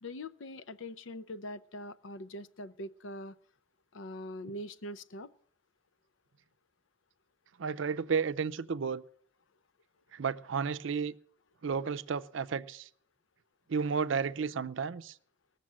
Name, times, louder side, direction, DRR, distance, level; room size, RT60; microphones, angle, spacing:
voice 1, 0.0-3.4 3.9-5.3, left 1 dB, 80° left, 0.6 m, -43 dB
voice 2, 7.6-9.0 10.1-11.1 11.6-12.9 13.7-15.1, right 6 dB, 80° right, 0.5 m, -32 dB
18.5 x 6.8 x 7.5 m
head